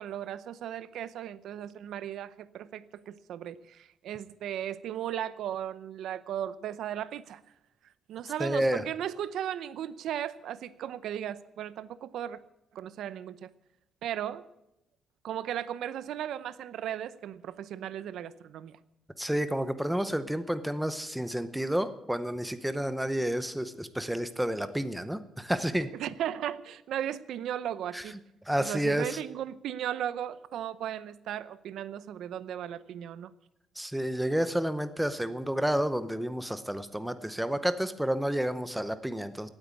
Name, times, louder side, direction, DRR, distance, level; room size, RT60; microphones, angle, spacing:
voice 1, 0.0-7.4 8.1-12.4 12.7-13.5 14.0-14.4 15.2-18.8 25.9-28.2 28.6-33.3, right 10 dB, 75° right, 16 dB, 0.7 m, -36 dB
voice 2, 8.4-8.8 19.2-25.9 27.9-28.0 28.5-29.2 33.8-39.5, right 1 dB, 5° right, 11 dB, 0.8 m, -30 dB
17.5 x 9.1 x 8.4 m, 0.86 s
cardioid pair, 160°, 0 cm